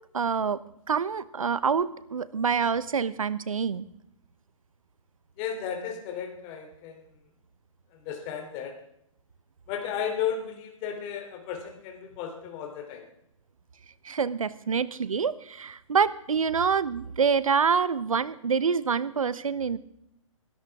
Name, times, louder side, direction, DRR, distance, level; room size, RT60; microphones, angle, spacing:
voice 1, 0.1-0.6 0.9-3.9 14.0-19.8, right 6 dB, 80° right, 17 dB, 0.9 m, -26 dB
voice 2, 5.4-7.0 8.0-8.7 9.7-13.0, left 8 dB, 30° left, 3 dB, 3.1 m, -34 dB
21.0 x 13.0 x 3.6 m, 0.75 s
hypercardioid pair, 130°, 17 cm